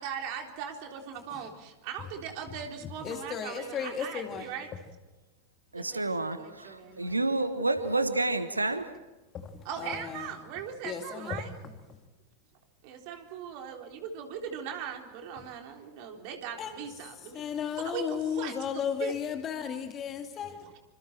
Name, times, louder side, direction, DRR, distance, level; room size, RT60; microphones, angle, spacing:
voice 1, 0.0-4.7 5.7-7.2 9.6-11.5 12.8-17.4 17.8-19.1 20.6-20.8, right 7 dB, 45° right, 3.7 m, -40 dB
voice 2, 3.0-4.5 9.4-9.5 9.8-10.3 10.8-11.4 16.6-16.7 17.3-20.7, left 7 dB, 30° left, 2.3 m, -34 dB
voice 3, 5.7-8.9, right 2 dB, 80° right, 1.3 m, -29 dB
28.0 x 26.0 x 4.5 m
figure-of-eight pair, 90°, 0 cm